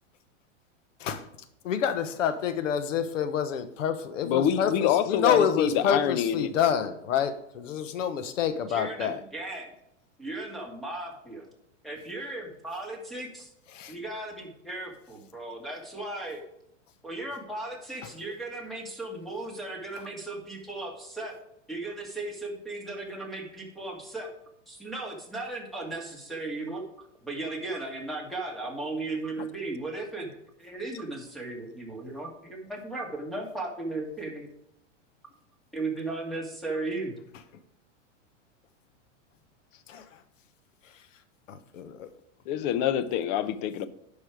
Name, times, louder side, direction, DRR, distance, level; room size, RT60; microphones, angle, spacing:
voice 1, 1.6-9.2 13.7-14.0 18.0-18.1 39.9-40.2 40.8-41.0 41.5-42.1 42.5-42.8, left 8 dB, 85° left, 1.1 m, -28 dB
voice 2, 4.3-6.5 42.5-43.9, left 10 dB, 45° left, 0.8 m, -26 dB
voice 3, 8.7-9.7 10.2-11.5 11.8-13.5 13.9-16.4 17.0-21.4 21.7-24.3 24.7-26.8 27.2-34.5 35.7-37.2, right 2 dB, ahead, 2.4 m, -36 dB
10.5 x 5.6 x 4.8 m
supercardioid pair, 130°, 37 cm